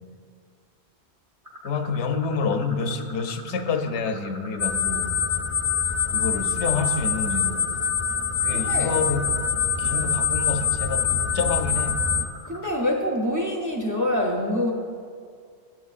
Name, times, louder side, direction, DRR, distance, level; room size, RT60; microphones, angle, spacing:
sound 1, 1.4-12.8, left 1 dB, 50° right, 1.3 m, -43 dB
voice 1, 1.6-5.2 6.1-7.7 8.4-9.4 9.8-12.0, left 4 dB, 90° left, 7 dB, 0.9 m, -28 dB
sound 2, 4.6-12.3, left 6 dB, 40° left, 0.5 m, -24 dB
voice 2, 8.5-9.0 9.8-10.1 12.5-14.7, left 1 dB, 20° right, 1 dB, 0.6 m, -26 dB
12.5 x 7.4 x 2.4 m, 2.1 s
omnidirectional pair, 1.1 m